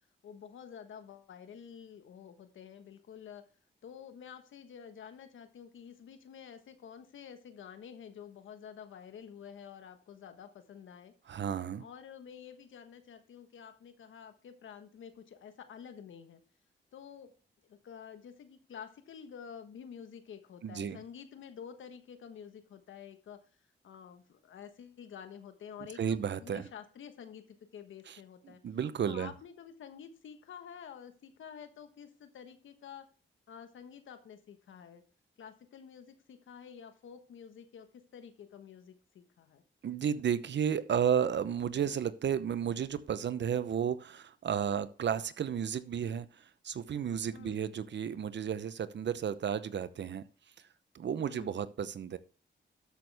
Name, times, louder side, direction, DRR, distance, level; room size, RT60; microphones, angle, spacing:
voice 1, 0.2-3.4 3.8-11.1 11.8-16.4 16.9-17.3 17.6-23.4 23.8-27.4 27.7-28.6 29.0-33.1 33.5-35.0 35.4-37.9 38.1-39.6 47.3-47.6 51.2-51.6, left 8 dB, 85° left, 9 dB, 1.3 m, -49 dB
voice 2, 11.3-11.9 20.6-21.0 26.0-26.7 28.1-28.2 28.4-29.3 39.8-50.3 50.9-52.2, right 8 dB, 65° right, 14 dB, 0.8 m, -33 dB
13.0 x 6.2 x 3.5 m, 0.36 s
cardioid pair, 60°, 20 cm